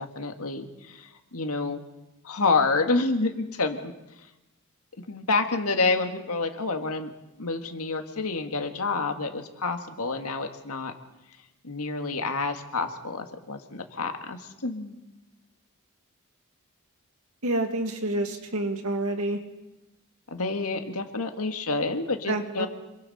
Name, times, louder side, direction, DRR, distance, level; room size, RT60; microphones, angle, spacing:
voice 1, 0.0-1.8 2.2-3.9 5.1-7.1 7.4-10.9 11.6-15.0 20.3-22.7, left 3 dB, 75° left, 5 dB, 1.9 m, -28 dB
voice 2, 17.4-19.4 22.3-22.7, right 1 dB, 70° right, 5 dB, 2.3 m, -28 dB
27.0 x 23.0 x 4.3 m, 0.98 s
head